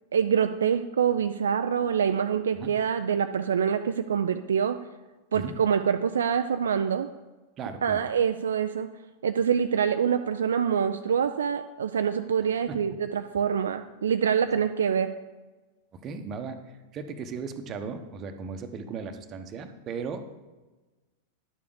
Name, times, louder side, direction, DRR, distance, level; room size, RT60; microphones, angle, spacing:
voice 1, 0.1-4.8 5.3-7.1 7.8-8.9 9.2-15.1, right 7 dB, 65° right, 8 dB, 0.4 m, -25 dB
voice 2, 7.6-8.0 16.0-16.6 16.9-20.5, right 5 dB, 30° right, 7 dB, 1.0 m, -36 dB
11.0 x 7.1 x 5.0 m, 1.2 s
figure-of-eight pair, 90°, 0 cm